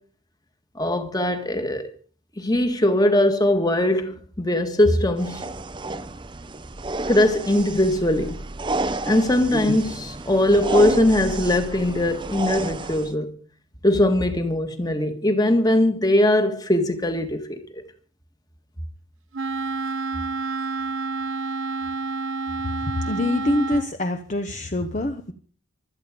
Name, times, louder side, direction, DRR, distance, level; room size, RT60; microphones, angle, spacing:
voice 1, 0.8-1.9 2.4-5.5 7.1-8.4 9.1-13.3 13.8-17.8, left 1 dB, 20° left, 1.7 m, -21 dB
sound 1, 5.2-13.1, right 2 dB, 20° right, 0.7 m, -30 dB
Wind instrument woodwind instrument, 19.3-23.9, right 4 dB, 65° right, 0.7 m, -29 dB
voice 2, 23.0-25.3, left 1 dB, 35° left, 0.9 m, -25 dB
25.0 x 8.8 x 5.1 m
head